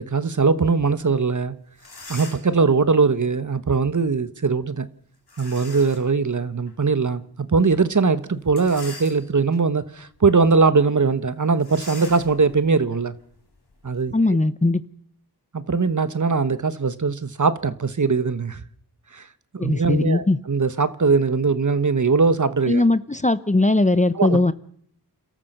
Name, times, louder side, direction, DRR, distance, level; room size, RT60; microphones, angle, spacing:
voice 1, 0.0-1.6 2.1-4.9 5.4-13.1 13.8-14.1 15.5-18.6 19.1-19.3 19.5-22.8 24.1-24.5, right 4 dB, 45° right, 1.2 m, -21 dB
sound 1, 1.4-1.5 1.7-2.6 5.3-6.1 6.7-6.8 8.4-9.6 10.1-10.3 10.6-10.7 11.6-14.1, left 3 dB, 75° left, 4.4 m, -42 dB
voice 2, 14.1-14.8 19.6-20.4 22.7-24.5, left 2 dB, 20° left, 0.8 m, -19 dB
29.5 x 13.5 x 6.7 m
wide cardioid pair, 60°, 40 cm